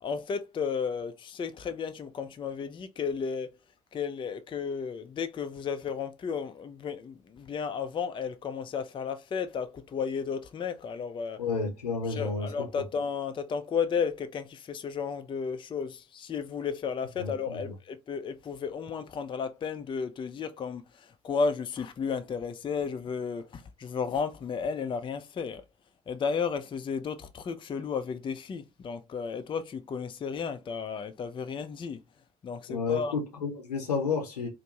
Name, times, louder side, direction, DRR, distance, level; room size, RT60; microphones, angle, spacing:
voice 1, 0.0-3.5 3.9-11.4 12.1-25.6 26.1-32.0 32.4-33.2, left 6 dB, 25° left, 0.4 m, -33 dB
voice 2, 11.4-12.7 17.2-17.6 32.7-34.5, left 5 dB, 85° left, 0.7 m, -31 dB
2.5 x 2.1 x 2.9 m
figure-of-eight pair, 45°, 20 cm